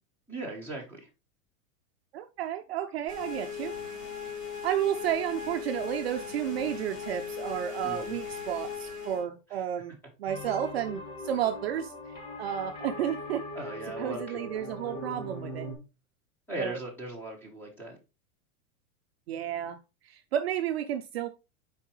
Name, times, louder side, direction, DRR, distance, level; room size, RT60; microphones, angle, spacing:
voice 1, 0.3-1.1 7.8-8.2 9.5-9.6 13.5-14.5 16.5-18.0, right 2 dB, 5° left, 1.0 m, -38 dB
voice 2, 2.1-3.8 4.6-13.4 14.0-15.7 16.6-16.8 19.3-19.8 20.0-21.3, right 10 dB, 45° right, 0.5 m, -32 dB
sound 1, 3.1-9.2, left 6 dB, 25° left, 3.8 m, -38 dB
sound 2, 10.3-15.7, left 1 dB, 65° left, 2.5 m, -40 dB
7.1 x 4.6 x 3.1 m
supercardioid pair, 175°, 44 cm